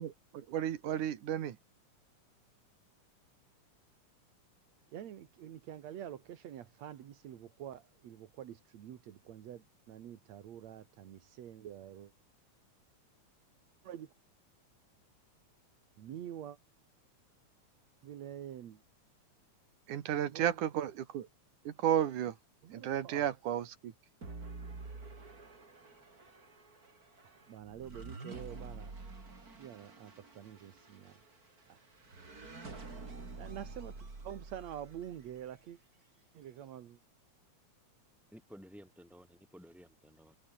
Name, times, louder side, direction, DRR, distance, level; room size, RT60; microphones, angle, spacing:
voice 1, 0.0-1.6 19.9-21.3 21.6-22.4 22.7-23.9, right 10 dB, 90° right, 3.1 m, -33 dB
voice 2, 4.9-12.1 13.8-14.1 16.0-16.6 18.0-18.8 20.3-20.8 22.6-23.2 27.2-28.9 29.5-31.2 31.7-31.9 33.4-35.8 36.3-37.0, right 10 dB, 65° right, 2.6 m, -47 dB
sound 1, 24.2-35.5, right 3 dB, 30° right, 3.9 m, -49 dB
voice 3, 38.3-40.4, equal, ahead, 6.8 m, -54 dB
omnidirectional pair, 3.5 m